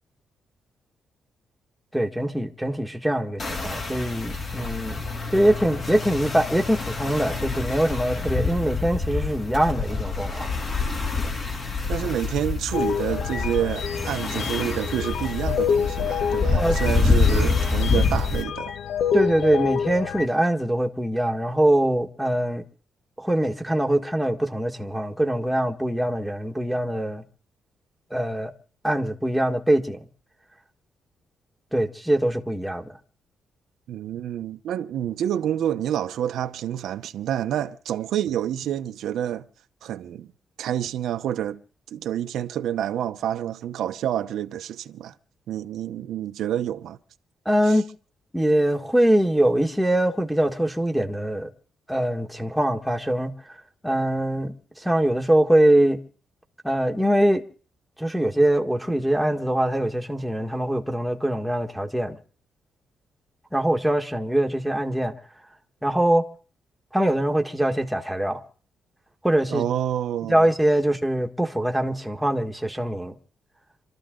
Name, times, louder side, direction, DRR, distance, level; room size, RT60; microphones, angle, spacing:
voice 1, 1.9-5.0 5.3-10.5 16.5-16.8 19.1-22.6 23.2-27.2 28.1-28.5 28.8-30.0 31.7-32.9 47.4-47.8 48.3-51.5 51.9-53.3 53.8-56.0 56.6-57.4 58.0-62.2 63.5-65.1 65.8-66.3 66.9-68.4 69.2-69.7 70.2-73.2, right 1 dB, ahead, 1.6 m, -23 dB
sound 1, 3.4-18.4, left 4 dB, 40° left, 2.8 m, -26 dB
voice 2, 11.9-18.7 33.9-39.5 39.8-40.3 40.6-41.6 41.9-45.1 45.5-47.0 47.7-47.8 69.5-70.5, right 10 dB, 80° right, 0.8 m, -28 dB
sound 2, 12.7-20.3, left 7 dB, 70° left, 0.9 m, -28 dB
27.0 x 13.5 x 3.8 m
cardioid pair, 145°, 0 cm